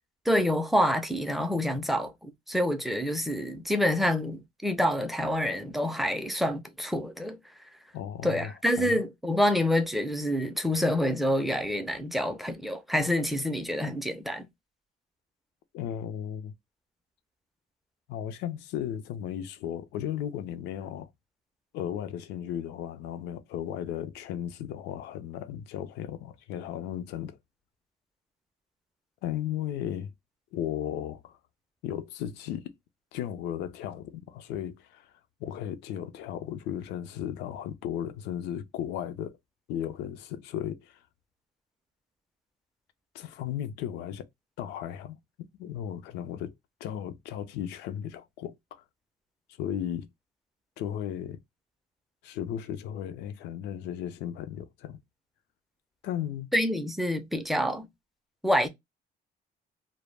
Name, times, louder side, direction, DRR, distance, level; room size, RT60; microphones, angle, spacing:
voice 1, 0.3-7.4 8.2-14.5 56.5-57.9 58.4-58.7, equal, ahead, 0.4 m, -27 dB
voice 2, 7.9-9.0 15.7-16.5 18.1-21.1 21.7-27.4 29.2-30.1 30.5-31.4 31.8-32.7 33.1-35.1 35.4-39.4 39.7-41.0 43.1-44.3 44.6-45.2 45.6-46.5 46.8-48.8 49.6-50.1 50.8-51.4 52.2-55.0 56.0-56.5, left 10 dB, 85° left, 0.4 m, -35 dB
2.0 x 2.0 x 3.1 m
cardioid pair, 110°, 17 cm